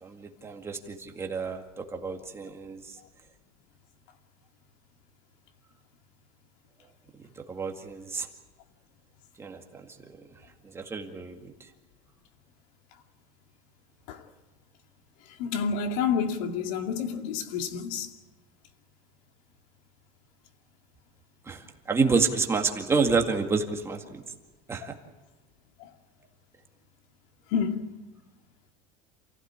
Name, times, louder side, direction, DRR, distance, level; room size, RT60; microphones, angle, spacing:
voice 1, 0.0-3.0 7.5-8.3 9.4-9.9 10.7-11.5 21.5-24.2 24.7-24.9, right 4 dB, 15° right, 2.1 m, -29 dB
voice 2, 15.4-18.1 25.8-25.9 27.5-27.9, left 6 dB, 70° left, 2.4 m, -29 dB
28.5 x 16.0 x 8.9 m
cardioid pair, 165°, 19 cm